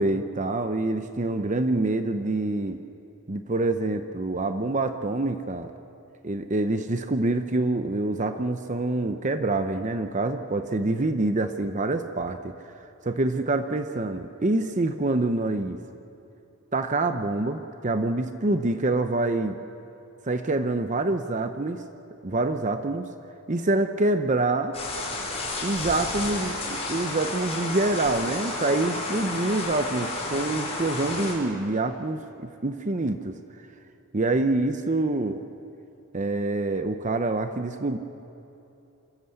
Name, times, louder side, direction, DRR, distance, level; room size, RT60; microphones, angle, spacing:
voice 1, 0.0-2.8 3.3-5.7 6.2-12.5 13.0-15.8 16.7-19.6 20.3-21.8 22.2-23.1 23.5-24.8 25.6-33.4 34.1-35.4 36.1-38.0, right 2 dB, 35° right, 8 dB, 0.8 m, -26 dB
sound 1, 24.7-31.3, left 2 dB, 30° left, 5.0 m, -31 dB
26.5 x 14.0 x 7.9 m, 2.8 s
head